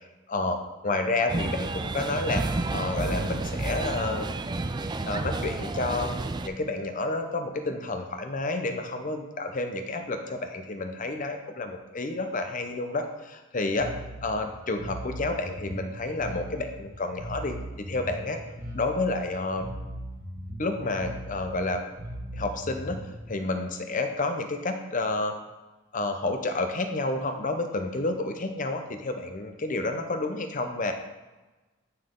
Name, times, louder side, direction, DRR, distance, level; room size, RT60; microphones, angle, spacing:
voice 1, 0.3-4.3 5.1-6.1 6.4-13.9 14.2-18.4 18.7-19.7 20.6-21.8 22.3-23.0 23.3-25.3 25.9-30.9, left 2 dB, 45° left, 6 dB, 0.8 m, -30 dB
sound 1, 1.3-6.5, right 2 dB, 20° right, 0.3 m, -30 dB
Bass guitar, 13.8-23.2, equal, 45° right, 1.7 m, -39 dB
8.8 x 5.8 x 3.8 m, 1.2 s
head